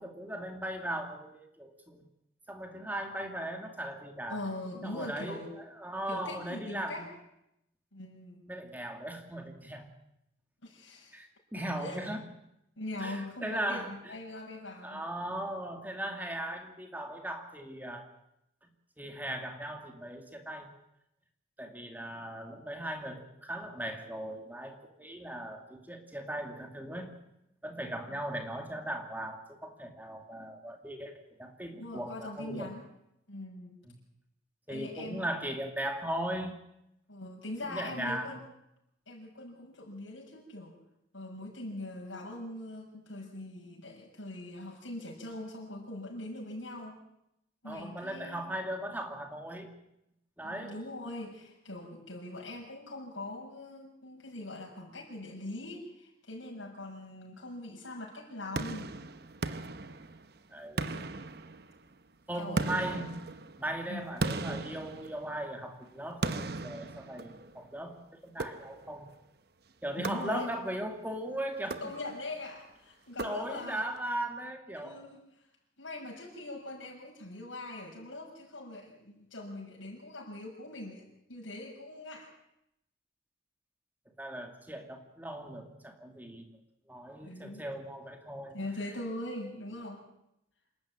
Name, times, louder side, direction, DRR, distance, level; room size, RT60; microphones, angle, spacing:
voice 1, 0.0-2.0 2.5-4.4 4.8-7.0 8.5-9.9 11.1-12.2 13.0-14.1 14.8-18.1 19.0-20.7 21.6-27.1 27.6-31.1 31.4-32.7 33.9-34.0 34.7-36.5 37.7-38.3 47.6-49.7 50.4-50.8 60.5-60.9 62.3-63.1 63.6-69.1 69.8-71.8 73.2-75.0 84.2-86.4 86.9-88.6, right 1 dB, 10° right, 4 dB, 2.4 m, -38 dB
voice 2, 4.3-5.5 6.1-7.1 7.9-8.4 10.6-11.2 11.6-12.1 12.8-15.0 28.1-28.2 31.7-32.8 33.3-33.8 34.7-35.2 37.1-38.4 39.1-40.8 41.1-47.0 47.6-48.4 50.4-58.9 60.8-61.1 62.4-63.1 63.9-64.0 70.0-70.5 71.8-73.9 74.7-75.5 75.8-82.3 87.2-87.7 88.5-90.0, left 2 dB, 80° left, -2 dB, 6.6 m, -42 dB
sound 1, 58.6-60.4 60.8-61.9 62.6-65.6 66.2-67.6 68.4-69.0 70.0-70.8 71.6-72.4 73.2-73.9, right 3 dB, 50° right, 0.9 m, -37 dB
27.5 x 12.0 x 8.9 m, 0.82 s
head